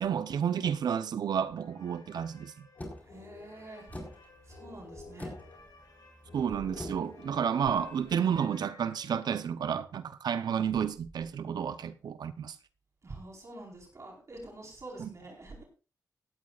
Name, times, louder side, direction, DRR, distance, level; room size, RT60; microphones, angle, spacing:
voice 1, 0.0-2.7 6.3-12.6 15.0-15.1, right 8 dB, 80° right, 0.8 m, -31 dB
sound 1, 1.5-9.4, left 3 dB, 65° left, 7.8 m, -52 dB
sound 2, 2.8-8.4, left 1 dB, 25° left, 4.5 m, -47 dB
voice 2, 3.0-3.9 4.4-5.4 13.0-15.6, right 2 dB, 45° right, 4.5 m, -46 dB
17.0 x 11.5 x 2.5 m
cardioid pair, 60°, 7 cm